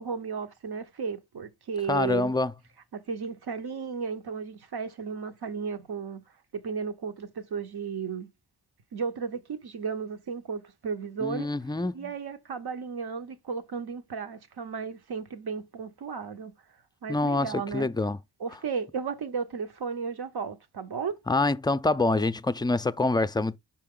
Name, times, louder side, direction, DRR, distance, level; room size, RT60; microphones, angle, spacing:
voice 1, 0.0-2.3 2.9-6.2 6.5-8.3 8.9-11.5 11.9-16.5 17.0-17.9 18.4-21.2, right 5 dB, 75° right, 0.9 m, -34 dB
voice 2, 1.9-2.5 11.2-12.1 17.1-18.2 21.3-23.6, left 2 dB, 10° left, 0.3 m, -26 dB
5.8 x 4.5 x 3.6 m
cardioid pair, 65°, 39 cm